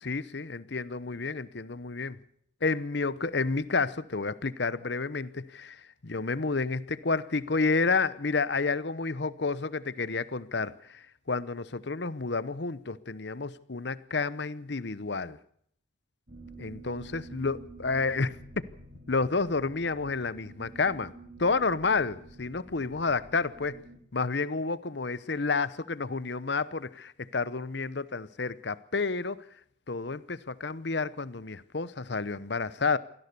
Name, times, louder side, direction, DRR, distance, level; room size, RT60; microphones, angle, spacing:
voice 1, 0.0-2.2 2.6-15.4 16.6-18.4 19.1-21.1 21.4-23.8 24.1-29.4 29.9-33.0, left 4 dB, 60° left, 0.9 m, -30 dB
sound 1, 16.3-24.0, right 2 dB, 45° right, 3.2 m, -49 dB
24.0 x 16.5 x 6.8 m
head